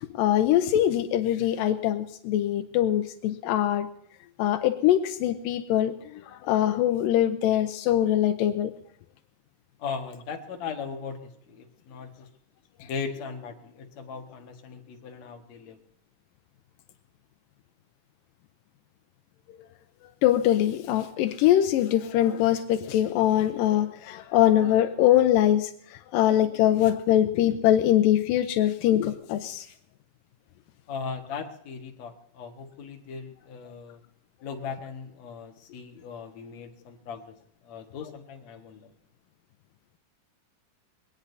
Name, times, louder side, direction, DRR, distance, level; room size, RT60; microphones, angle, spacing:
voice 1, 0.1-3.9 4.4-5.9 6.3-8.7 20.2-25.7 26.1-29.7, left 12 dB, 85° left, 8 dB, 2.4 m, -23 dB
voice 2, 9.8-12.3 12.8-15.8 30.9-34.0 34.4-37.4 37.6-38.9, left 5 dB, 55° left, 3 dB, 2.6 m, -38 dB
22.0 x 18.5 x 2.7 m, 0.66 s
omnidirectional pair, 4.0 m